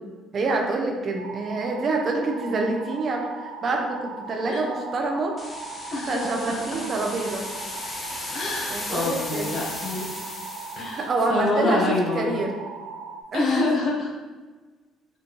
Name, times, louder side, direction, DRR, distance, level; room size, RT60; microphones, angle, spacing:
voice 1, 0.3-5.4 6.0-7.5 8.7-9.5 10.9-12.6 13.3-13.7, right 3 dB, 50° right, 2 dB, 0.6 m, -27 dB
sound 1, 1.2-13.2, right 4 dB, 85° right, 0.3 m, -38 dB
sound 2, 5.4-11.0, left 2 dB, 35° left, 0.7 m, -36 dB
voice 2, 5.9-6.6 8.3-10.1 10.8-12.3 13.3-14.1, left 3 dB, 55° left, -3 dB, 1.2 m, -26 dB
4.3 x 2.5 x 3.1 m, 1.3 s
hypercardioid pair, 60°, 0 cm